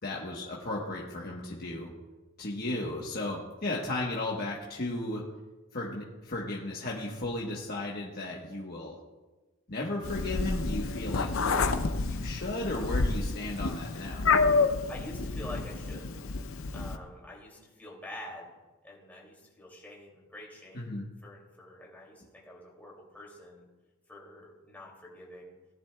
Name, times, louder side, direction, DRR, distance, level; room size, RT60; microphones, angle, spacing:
voice 1, 0.0-1.9 2.4-5.3 5.7-9.0 9.7-14.3 20.7-21.0, left 2 dB, 45° left, -3 dB, 1.2 m, -35 dB
Meow, 10.0-16.9, left 4 dB, 65° left, 0.6 m, -29 dB
voice 2, 14.9-16.1 16.7-18.5 18.8-23.7 24.1-25.5, left 1 dB, 10° left, -3 dB, 2.7 m, -47 dB
18.0 x 10.5 x 2.4 m, 1.2 s
head